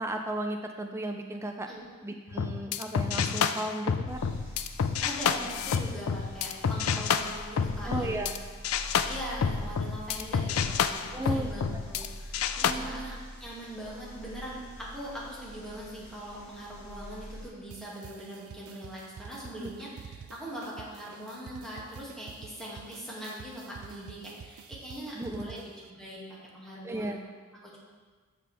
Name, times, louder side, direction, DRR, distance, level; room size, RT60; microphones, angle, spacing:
voice 1, 0.0-1.7 2.0-4.2 7.8-8.3 11.1-11.5 11.7-11.8 12.6-13.1 19.6-19.7 25.1-25.7 26.8-27.2, right 1 dB, 15° right, 3 dB, 0.4 m, -35 dB
sound 1, 2.3-8.4 8.6-12.1 12.3-12.7, left 6 dB, 90° left, 0.4 m, -29 dB
sound 2, 4.1-17.5, equal, 60° left, 2.8 m, -44 dB
voice 2, 5.0-8.3 8.7-27.2 27.6-27.8, equal, ahead, -7 dB, 2.1 m, -41 dB
sound 3, 17.7-25.9, right 7 dB, 85° right, 0.4 m, -49 dB
13.5 x 5.1 x 3.4 m, 1.4 s
head